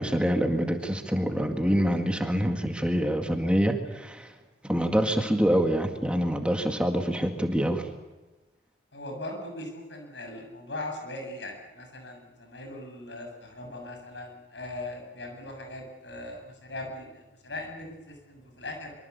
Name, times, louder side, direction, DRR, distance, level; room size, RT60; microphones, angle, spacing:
voice 1, 0.0-4.3 4.6-7.9, equal, 5° right, 4 dB, 1.9 m, -26 dB
voice 2, 8.9-18.9, left 2 dB, 80° left, 3 dB, 7.6 m, -39 dB
25.0 x 24.0 x 8.3 m, 1.1 s
head